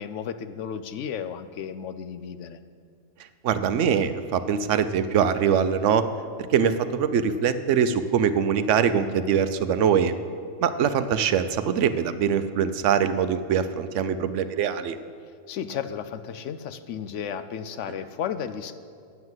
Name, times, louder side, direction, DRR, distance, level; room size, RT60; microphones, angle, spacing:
voice 1, 0.0-2.6 15.5-18.7, left 8 dB, 70° left, 11 dB, 0.9 m, -33 dB
voice 2, 3.4-6.0 6.5-10.1 10.6-15.0, right 7 dB, 70° right, 11 dB, 1.0 m, -23 dB
9.5 x 8.0 x 7.9 m, 2.3 s
omnidirectional pair, 1.3 m